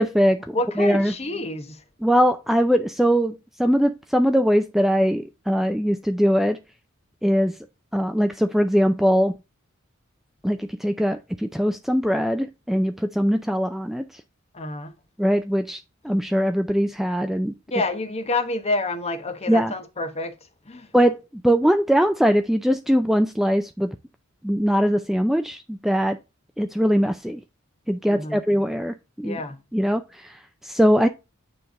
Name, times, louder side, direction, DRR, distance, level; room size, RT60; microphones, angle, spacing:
voice 1, 0.0-1.1 2.0-6.6 7.2-7.6 7.9-9.3 10.4-14.2 15.2-17.5 19.5-19.7 20.9-23.9 24.4-26.2 26.6-27.4 27.9-29.4 29.7-31.1, equal, ahead, 0.4 m, -21 dB
voice 2, 0.5-1.8 14.5-14.9 17.7-20.4 20.7-20.9 28.1-28.4 29.2-29.6, left 2 dB, 30° left, 1.0 m, -28 dB
9.3 x 3.3 x 3.7 m
head